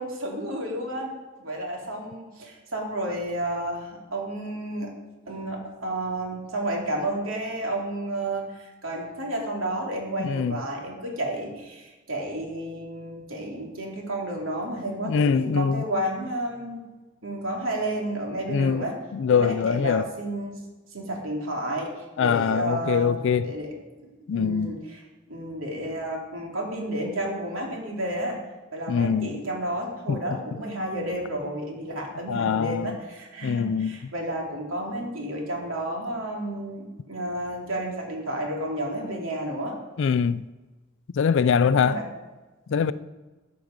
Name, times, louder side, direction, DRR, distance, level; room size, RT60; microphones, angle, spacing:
voice 1, 0.0-4.9 5.3-16.8 17.2-19.0 19.3-20.6 20.9-23.7 24.0-24.8 25.3-28.4 28.7-39.8 41.3-42.0 42.7-42.9, right 1 dB, 75° right, 2.9 m, -31 dB
voice 2, 10.2-10.6 15.0-15.8 18.5-18.9 19.1-20.1 22.2-23.5 24.3-24.8 28.9-29.4 30.1-30.2 32.3-33.0 33.4-34.0 40.0-40.5 41.1-42.0 42.7-42.9, left 6 dB, 60° left, 0.4 m, -23 dB
14.0 x 8.5 x 5.1 m
head